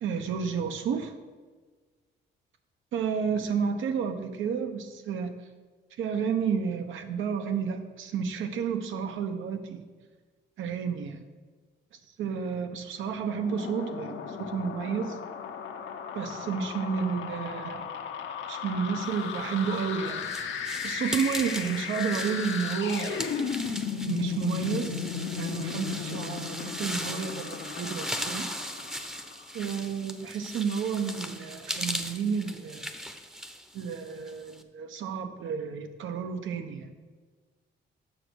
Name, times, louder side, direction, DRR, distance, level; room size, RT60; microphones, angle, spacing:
voice 1, 0.0-1.1 2.9-5.3 6.0-9.8 10.6-11.2 12.2-15.2 16.1-17.9 18.5-20.3 20.8-23.3 24.1-25.0 25.3-28.5 29.5-32.8 33.7-36.9, right 6 dB, 80° right, 7 dB, 1.0 m, -31 dB
sound 1, 13.2-29.6, left 7 dB, 75° left, 1.0 m, -35 dB
sound 2, 19.4-34.6, equal, 5° right, 0.7 m, -38 dB
7.7 x 6.4 x 6.3 m, 1.4 s
cardioid pair, 90°, 20 cm